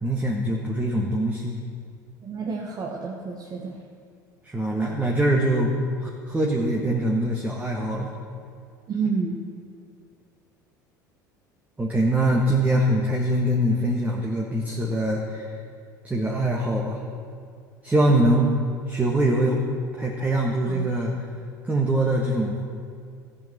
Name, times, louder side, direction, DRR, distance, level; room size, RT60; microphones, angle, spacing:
voice 1, 0.0-1.6 4.4-8.1 11.8-15.5 16.0-17.0 17.8-18.5 18.9-19.6 19.9-21.1 21.6-22.6, right 1 dB, 15° right, -2 dB, 1.5 m, -23 dB
voice 2, 2.2-3.8 8.9-9.4 20.7-20.9, right 5 dB, 40° right, -1 dB, 1.3 m, -29 dB
14.0 x 5.5 x 7.8 m, 2.2 s
hypercardioid pair, 75°, 10 cm